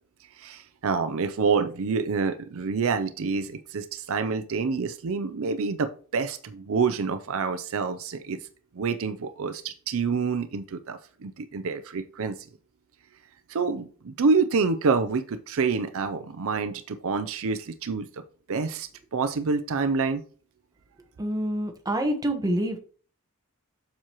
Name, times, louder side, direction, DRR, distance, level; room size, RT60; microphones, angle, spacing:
voice 1, 0.4-8.4 8.7-12.5 13.5-18.2 18.5-20.2, right 4 dB, 65° right, 11 dB, 0.5 m, -27 dB
voice 2, 21.2-22.8, right 1 dB, 15° right, 5 dB, 1.0 m, -27 dB
7.3 x 6.2 x 2.9 m, 0.41 s
head